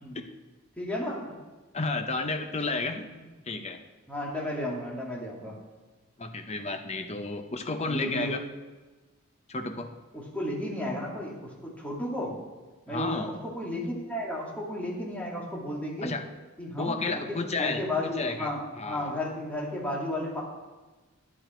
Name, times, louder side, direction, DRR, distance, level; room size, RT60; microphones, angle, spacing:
voice 1, 0.8-1.2 4.1-5.6 7.8-8.3 10.1-12.4 12.9-16.1 16.6-17.2 17.6-20.4, left 1 dB, 5° left, -4 dB, 2.6 m, -33 dB
voice 2, 1.7-3.1 3.5-3.8 6.2-8.4 9.5-9.9 12.9-13.3 16.0-16.2 16.8-19.1, left 3 dB, 30° left, 6 dB, 0.9 m, -32 dB
11.5 x 9.9 x 4.5 m, 1.2 s
head